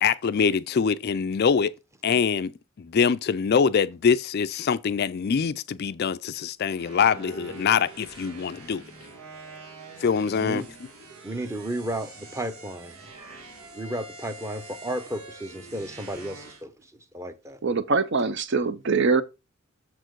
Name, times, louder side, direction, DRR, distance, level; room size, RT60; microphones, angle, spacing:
voice 1, 0.0-1.7 2.0-2.5 2.8-8.8 10.0-10.7, left 6 dB, 45° left, 0.4 m, -24 dB
sound 1, 6.7-16.6, right 3 dB, 90° right, 1.7 m, -45 dB
voice 2, 11.2-12.9 13.7-16.7 17.1-17.6, right 1 dB, 15° right, 0.7 m, -33 dB
voice 3, 17.6-19.2, right 4 dB, 55° right, 0.6 m, -23 dB
7.0 x 4.4 x 4.6 m
head